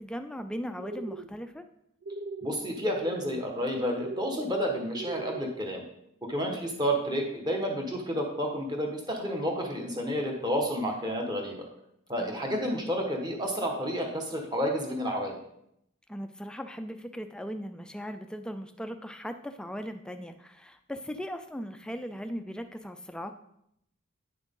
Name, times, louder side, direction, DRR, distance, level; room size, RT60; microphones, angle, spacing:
voice 1, 0.0-1.6 12.2-12.4 16.1-23.3, equal, 5° left, 8 dB, 0.4 m, -38 dB
sound 1, 0.8-1.3 2.0-2.5 2.8-3.3 3.9-4.4 4.9-5.5, right 3 dB, 70° right, 0.6 m, -39 dB
voice 2, 2.4-5.8 6.3-11.7 12.1-15.4, equal, 20° right, 1 dB, 1.3 m, -30 dB
9.7 x 6.3 x 3.8 m, 0.77 s
head